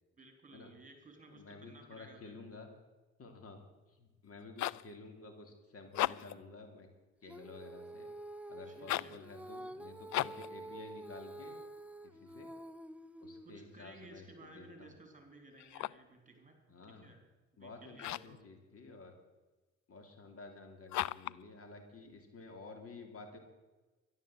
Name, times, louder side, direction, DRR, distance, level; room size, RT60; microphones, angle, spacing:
voice 1, 0.2-2.4 8.7-9.2 13.4-16.6 16.8-17.2 17.5-18.5, right 2 dB, 25° right, 5 dB, 3.6 m, -57 dB
voice 2, 1.3-2.7 3.2-3.6 4.0-6.9 7.2-8.1 8.5-11.6 12.2-12.5 13.2-15.0 16.7-17.1 17.6-19.1 19.9-23.4, left 3 dB, 50° left, 4 dB, 3.1 m, -52 dB
sound 1, 4.3-4.9 5.8-6.4 8.8-9.2 10.1-10.5 15.6-16.1 18.0-18.4 20.9-21.4, left 15 dB, 70° left, 0.5 m, -36 dB
Female singing, 7.3-13.8, right 1 dB, 5° right, 0.7 m, -49 dB
13.0 x 11.5 x 7.8 m, 1.2 s
cardioid pair, 90°, 30 cm